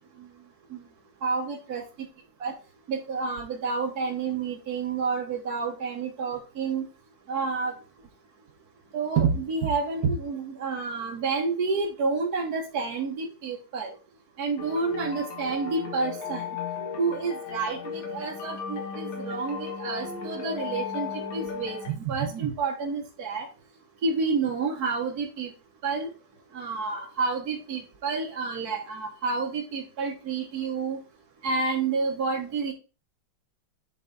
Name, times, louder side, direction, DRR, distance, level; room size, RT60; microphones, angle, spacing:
voice 1, 1.2-1.8 2.4-2.5 2.9-6.8 7.3-7.7 8.9-13.9 14.4-16.5 17.0-23.5 24.0-25.5 25.8-26.1 26.5-31.0 31.4-32.7, right 4 dB, 50° right, 0 dB, 1.4 m, -29 dB
sound 1, 14.6-21.9, left 5 dB, 65° left, 2.2 m, -35 dB
7.9 x 4.0 x 3.9 m, 0.34 s
omnidirectional pair, 2.4 m